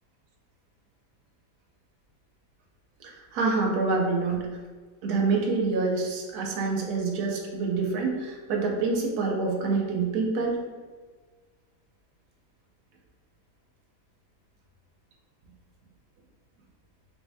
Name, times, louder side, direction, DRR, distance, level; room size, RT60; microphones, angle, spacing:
voice 1, 3.0-4.5 5.0-10.6, right 4 dB, 80° right, 0 dB, 1.2 m, -26 dB
3.7 x 2.6 x 3.3 m, 1.5 s
omnidirectional pair, 1.7 m